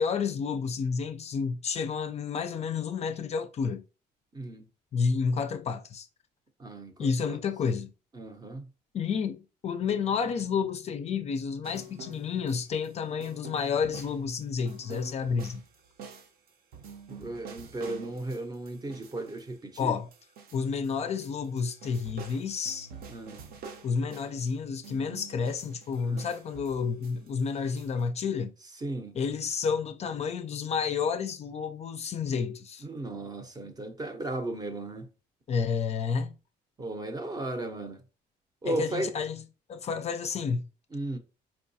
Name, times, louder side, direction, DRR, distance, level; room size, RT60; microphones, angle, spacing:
voice 1, 0.0-3.8 4.9-6.1 7.0-7.9 8.9-15.6 19.8-20.1 20.5-22.9 23.8-28.5 29.1-32.8 35.5-36.3 38.6-39.4 39.7-40.7, left 6 dB, 40° left, 0.4 m, -30 dB
voice 2, 4.3-4.7 6.6-7.4 8.1-8.6 17.1-20.0 23.1-23.4 26.0-26.3 28.8-29.1 32.8-35.1 36.8-38.0 38.6-39.1 40.9-41.2, right 2 dB, 25° right, 0.6 m, -35 dB
sound 1, 11.6-12.9 13.2-20.9 21.2-24.5 24.8-28.0, right 5 dB, 60° right, 0.7 m, -48 dB
4.4 x 2.3 x 2.7 m
cardioid pair, 110°, 17 cm